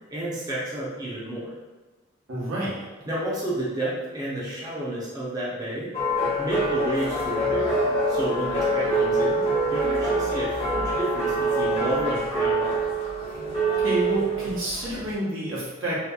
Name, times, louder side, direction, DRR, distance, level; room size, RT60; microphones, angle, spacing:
voice 1, 0.1-1.5 3.1-5.9 6.4-12.9, right 1 dB, 20° right, -7 dB, 0.5 m, -31 dB
voice 2, 2.3-2.9 13.8-16.0, right 1 dB, 80° right, -7 dB, 0.9 m, -29 dB
sound 1, 5.9-15.1, right 2 dB, 30° left, 0.7 m, -25 dB
2.9 x 2.6 x 2.2 m, 1.2 s
head